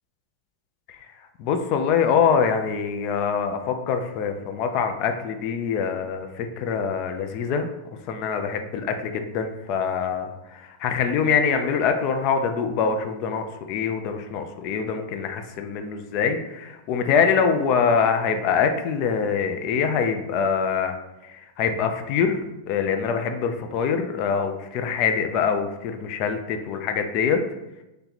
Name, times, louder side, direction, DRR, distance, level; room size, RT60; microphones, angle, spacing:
voice 1, 1.4-7.7 8.1-20.9 21.2-27.4, left 6 dB, 40° left, 6 dB, 0.4 m, -24 dB
3.3 x 2.9 x 3.9 m, 0.97 s
supercardioid pair, 160°, 0 cm